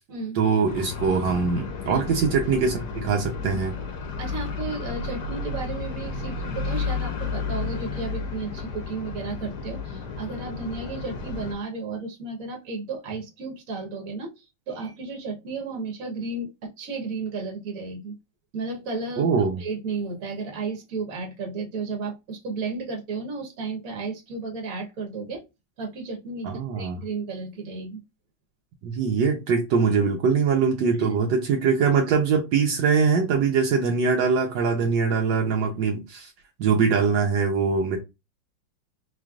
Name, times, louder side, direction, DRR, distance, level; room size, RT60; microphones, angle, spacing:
voice 1, 0.3-3.8 19.2-19.6 26.4-27.0 28.8-36.3 36.6-38.0, right 5 dB, 75° right, 1.4 m, -22 dB
sound 1, 0.6-11.5, left 4 dB, 65° left, 1.4 m, -32 dB
voice 2, 4.2-14.3 14.7-18.1 18.5-19.3 19.6-25.4 25.8-28.0 31.0-31.1 35.3-35.4, right 4 dB, 50° right, 1.5 m, -33 dB
4.3 x 3.2 x 2.4 m
omnidirectional pair, 2.0 m